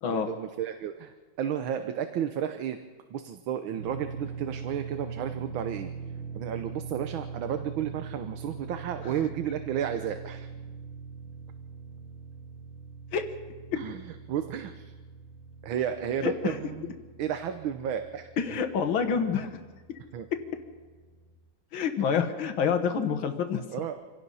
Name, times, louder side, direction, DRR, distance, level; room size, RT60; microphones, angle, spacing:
voice 1, 0.1-2.8 3.1-5.9 6.3-10.5 13.7-14.9 15.6-16.9 17.2-18.6 20.1-20.3 23.7-23.9, right 9 dB, 85° right, 8 dB, 1.7 m, -32 dB
sound 1, 3.7-21.3, right 5 dB, 45° right, 4.1 m, -42 dB
voice 2, 16.2-16.6 18.4-19.5 21.7-23.6, left 6 dB, 85° left, 6 dB, 2.1 m, -27 dB
26.5 x 17.5 x 5.6 m, 1.4 s
omnidirectional pair, 2.1 m